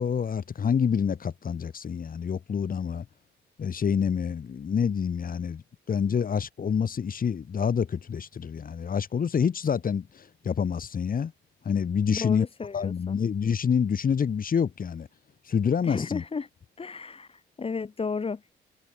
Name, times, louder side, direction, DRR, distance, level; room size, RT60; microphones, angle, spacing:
voice 1, 0.0-3.1 3.6-5.6 5.9-11.3 11.6-12.5 12.7-15.1 15.5-16.2, left 7 dB, 45° left, 2.6 m, -27 dB
voice 2, 12.1-13.2 15.8-16.5 16.8-18.6, left 5 dB, 30° left, 1.2 m, -33 dB
cardioid pair, 90°, 20 cm